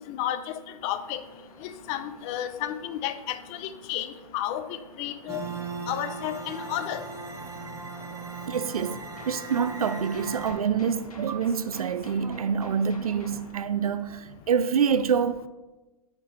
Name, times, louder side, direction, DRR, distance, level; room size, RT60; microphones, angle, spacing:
voice 1, 0.1-1.2 1.6-5.4 5.9-7.0, left 11 dB, 35° left, 0.6 m, -32 dB
sound 1, 0.9-13.5, left 3 dB, 80° left, 1.3 m, -51 dB
sound 2, 5.3-10.5, right 4 dB, 15° right, 1.5 m, -38 dB
voice 2, 8.5-9.0 9.3-15.5, right 7 dB, 80° right, 0.5 m, -26 dB
8.2 x 4.5 x 5.2 m
figure-of-eight pair, 110°, 18 cm